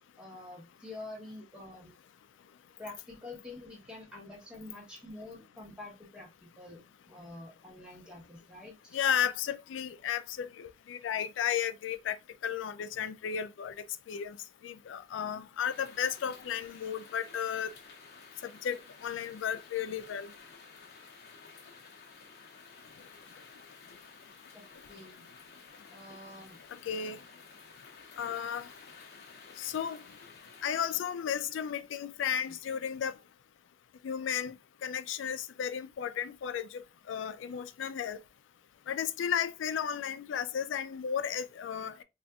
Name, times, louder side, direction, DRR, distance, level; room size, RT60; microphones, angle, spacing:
voice 1, 0.2-1.9 2.8-6.8 7.1-9.0 24.5-25.3 25.9-26.6, left 2 dB, 5° right, 0.9 m, -47 dB
voice 2, 8.9-12.2 12.4-13.7 14.1-14.4 14.6-17.7 18.4-20.3 26.9-27.2 28.2-28.7 29.6-30.0 30.6-33.1 34.0-34.6 34.8-38.2 38.9-42.0, left 8 dB, 90° left, 0.3 m, -34 dB
sound 1, 15.6-30.7, left 4 dB, 55° left, 0.7 m, -53 dB
3.9 x 2.4 x 2.3 m
head